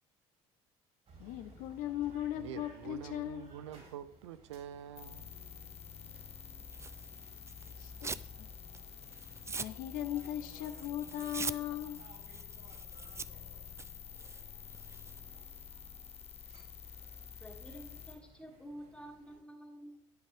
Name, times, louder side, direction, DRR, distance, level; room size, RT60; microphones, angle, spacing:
sound 1, 1.1-19.4, right 3 dB, 50° right, 4.0 m, -60 dB
voice 1, 1.2-3.5 7.8-8.1 8.4-8.5 9.6-12.0, left 12 dB, 70° left, 0.6 m, -38 dB
voice 2, 2.3-5.3, right 9 dB, 90° right, 0.4 m, -46 dB
sound 2, 4.9-18.1, left 7 dB, 45° left, 1.6 m, -49 dB
Tearing, 6.7-8.3 8.7-15.2, right 4 dB, 20° right, 0.4 m, -44 dB
voice 3, 17.4-20.0, equal, 5° left, 2.3 m, -50 dB
8.8 x 8.8 x 3.4 m
hypercardioid pair, 60°, 15 cm